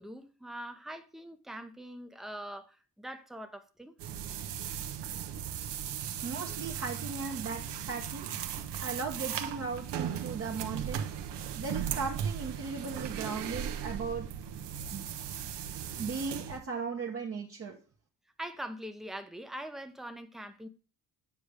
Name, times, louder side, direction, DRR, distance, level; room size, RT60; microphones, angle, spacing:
voice 1, 0.0-4.0 18.4-20.7, right 1 dB, ahead, 0.7 m, -43 dB
sound 1, 4.0-16.6, right 9 dB, 75° right, 0.9 m, -37 dB
voice 2, 6.2-8.3 8.8-11.0 11.6-14.3 14.9-15.1 16.0-17.8, right 4 dB, 35° right, 1.0 m, -37 dB
8.3 x 5.0 x 3.3 m
cardioid pair, 125°, 43 cm